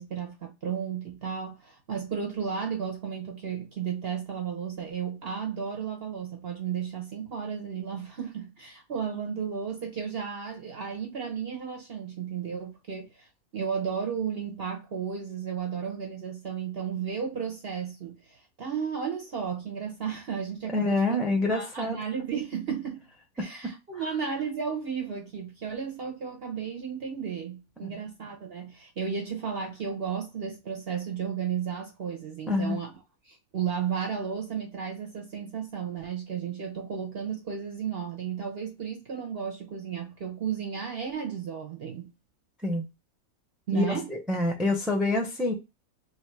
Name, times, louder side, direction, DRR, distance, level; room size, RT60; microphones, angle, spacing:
voice 1, 0.0-13.3 13.5-21.2 21.5-23.0 23.4-32.9 33.2-42.1 43.7-44.1, right 7 dB, 50° right, 0.9 m, -33 dB
voice 2, 20.7-22.0 23.4-23.7 27.8-27.9 32.5-32.8 42.6-42.9 43.7-45.5, left 2 dB, ahead, 0.4 m, -27 dB
3.2 x 2.6 x 4.5 m
omnidirectional pair, 1.6 m